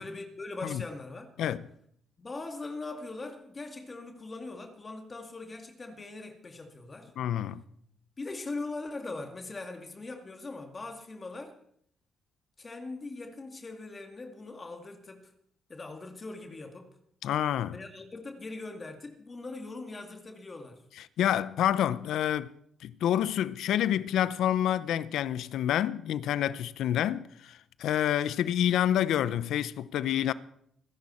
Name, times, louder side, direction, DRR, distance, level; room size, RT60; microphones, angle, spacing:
voice 1, 0.0-1.4 2.2-7.1 8.2-11.5 12.6-15.3 15.7-16.9 17.7-20.8, left 3 dB, 30° left, 2.0 m, -41 dB
voice 2, 7.2-7.6 17.2-17.8 21.2-22.5 22.8-30.3, left 11 dB, 80° left, 0.6 m, -28 dB
25.5 x 10.5 x 4.3 m
cardioid pair, 90°, 0 cm